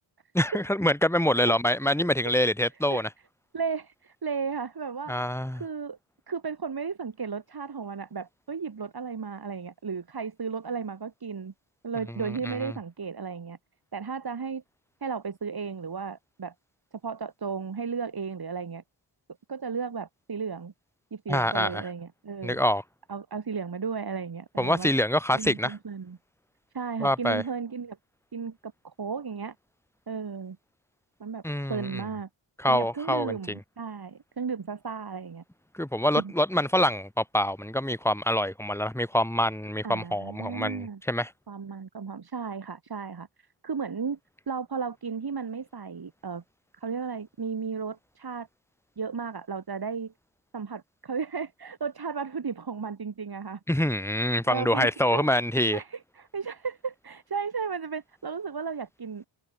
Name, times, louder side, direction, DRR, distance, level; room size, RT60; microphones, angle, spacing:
voice 1, 0.3-3.1 5.1-5.6 12.5-12.6 21.3-21.8 22.4-22.8 24.6-25.8 27.0-27.4 31.4-32.0 32.6-33.6 35.7-41.3 53.7-55.8, left 1 dB, 5° left, 3.9 m, -25 dB
voice 2, 3.5-5.1 5.5-6.0 6.3-11.5 11.8-13.6 13.9-14.6 15.0-16.5 17.0-18.8 19.5-20.7 21.1-22.6 23.1-24.9 25.3-26.2 26.7-28.0 28.3-29.5 30.1-30.6 31.2-31.4 31.7-32.3 32.7-35.4 36.2-36.3 39.8-41.0 41.5-43.3 43.6-44.2 44.5-46.4 46.7-48.5 49.0-50.1 50.5-53.6 54.5-55.3 55.7-59.3, right 5 dB, 50° right, 5.7 m, -34 dB
cardioid pair, 85°, 48 cm